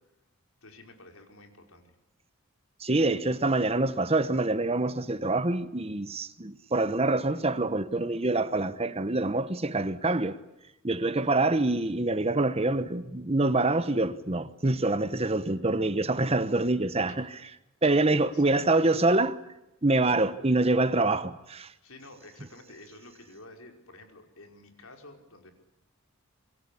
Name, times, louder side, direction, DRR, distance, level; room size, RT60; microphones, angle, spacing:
voice 1, 0.6-1.9 11.2-11.5 17.1-17.2 18.3-18.8 21.8-25.5, left 2 dB, 85° left, 5.2 m, -51 dB
voice 2, 2.8-10.4 10.8-17.4 17.8-19.4 19.8-21.7, right 2 dB, 30° right, 1.1 m, -26 dB
27.0 x 22.5 x 8.6 m
head